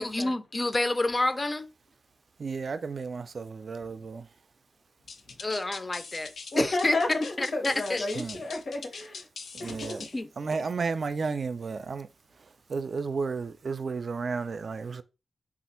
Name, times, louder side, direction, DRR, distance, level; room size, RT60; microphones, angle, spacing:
voice 1, 0.0-1.7 5.4-6.3 6.8-8.1 10.1-10.3, left 2 dB, 35° left, 0.4 m, -28 dB
voice 2, 2.4-4.3 8.2-8.3 9.6-10.0 10.4-12.1 12.7-15.0, right 4 dB, 65° right, 0.3 m, -32 dB
sound 1, 5.1-10.2, left 4 dB, 90° left, 0.4 m, -43 dB
voice 3, 6.5-9.3 9.6-10.0, left 2 dB, 75° left, 1.0 m, -32 dB
3.3 x 2.4 x 4.3 m
cardioid pair, 70°, 0 cm